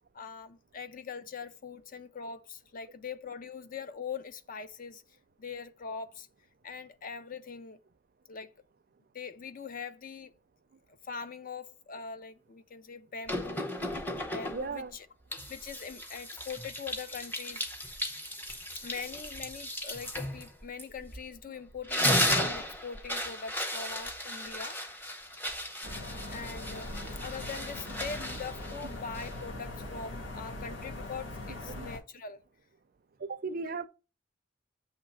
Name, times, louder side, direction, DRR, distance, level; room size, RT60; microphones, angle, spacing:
voice 1, 0.1-5.0 5.4-6.3 6.6-7.8 8.3-8.5 9.1-10.3 10.9-13.9 14.3-15.1 15.5-17.9 18.8-25.0 26.3-27.0 27.2-32.4, left 5 dB, 45° left, 0.5 m, -42 dB
sound 1, 13.3-14.8 15.3-21.4 21.7-29.5, left 1 dB, 10° left, 0.8 m, -35 dB
voice 2, 14.5-14.9 31.7-31.9 33.2-33.9, right 4 dB, 50° right, 0.5 m, -36 dB
sound 2, 25.8-32.0, left 2 dB, 85° left, 1.4 m, -41 dB
7.5 x 3.1 x 5.6 m
head